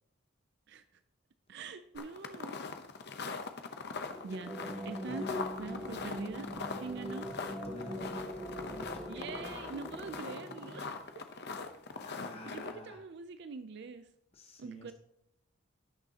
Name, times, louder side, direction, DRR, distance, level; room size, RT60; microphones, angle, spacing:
voice 1, 1.5-2.6 4.2-4.5 4.8-5.3 5.6-6.5 6.8-7.3 9.1-11.3 12.4-14.1 14.6-14.9, right 4 dB, 55° right, 11 dB, 0.4 m, -44 dB
sound 1, 1.9-12.7, left 4 dB, 55° left, 0.8 m, -42 dB
sound 2, 4.0-11.4, equal, 10° right, 0.8 m, -42 dB
voice 2, 7.6-8.3 8.6-9.0 12.0-13.0 14.3-14.9, left 1 dB, 30° left, 2 dB, 1.2 m, -50 dB
16.5 x 6.4 x 2.9 m, 0.79 s
head